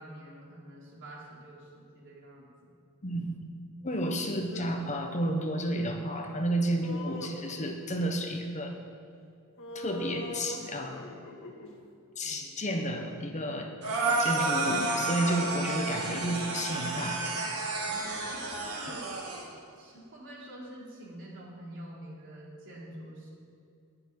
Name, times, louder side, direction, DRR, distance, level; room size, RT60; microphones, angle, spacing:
voice 1, 0.0-2.5 12.2-12.5 17.8-19.1 19.8-23.3, right 1 dB, 60° right, -4 dB, 3.6 m, -46 dB
voice 2, 3.0-3.4 3.8-8.8 9.7-11.1 12.2-13.7 14.2-17.3, equal, 35° left, 3 dB, 1.1 m, -31 dB
sound 1, 3.9-4.7 6.8-8.0 9.6-11.8 12.9-13.0 14.0-17.0, left 1 dB, 65° left, 1.6 m, -44 dB
sound 2, 13.8-19.4, right 3 dB, 90° right, 3.5 m, -31 dB
11.0 x 6.9 x 9.5 m, 2.4 s
head